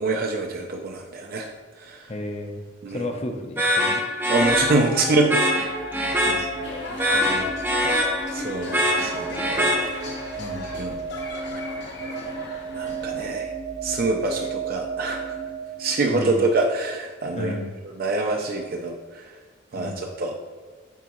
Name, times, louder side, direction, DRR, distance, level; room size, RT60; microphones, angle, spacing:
voice 1, 0.0-1.5 1.8-2.0 2.8-3.1 4.3-5.4 6.2-6.4 7.1-7.5 8.3-10.0 10.6-10.9 12.7-13.5 13.8-15.4 15.8-17.5 18.0-19.3 19.7-20.3, right 2 dB, 50° right, 2 dB, 0.5 m, -25 dB
voice 2, 2.1-2.6 2.9-4.0 6.2-6.7 10.4-10.6 14.3-14.5 16.1-16.5 17.4-17.7 19.8-20.0, left 1 dB, 35° left, 4 dB, 0.6 m, -33 dB
sound 1, 3.6-10.3, equal, 10° right, 0.8 m, -24 dB
sound 2, 4.4-16.5, right 3 dB, 90° right, 1.5 m, -34 dB
sound 3, 6.6-13.3, left 2 dB, 60° left, 1.1 m, -37 dB
9.1 x 3.6 x 3.0 m, 1.5 s
head